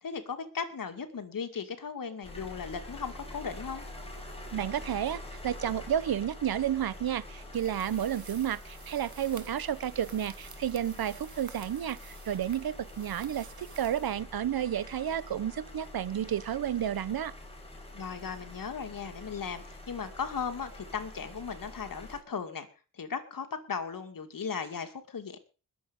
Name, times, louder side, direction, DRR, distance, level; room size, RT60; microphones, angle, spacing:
voice 1, 0.0-3.9 17.9-22.7 22.9-25.4, left 6 dB, 65° left, 2.4 m, -37 dB
sound 1, 2.2-22.2, left 1 dB, 15° left, 5.1 m, -46 dB
voice 2, 4.5-17.3, right 10 dB, 75° right, 1.0 m, -31 dB
sound 2, 7.5-14.7, right 5 dB, 50° right, 2.0 m, -52 dB
20.5 x 7.9 x 5.4 m
wide cardioid pair, 90°, 36 cm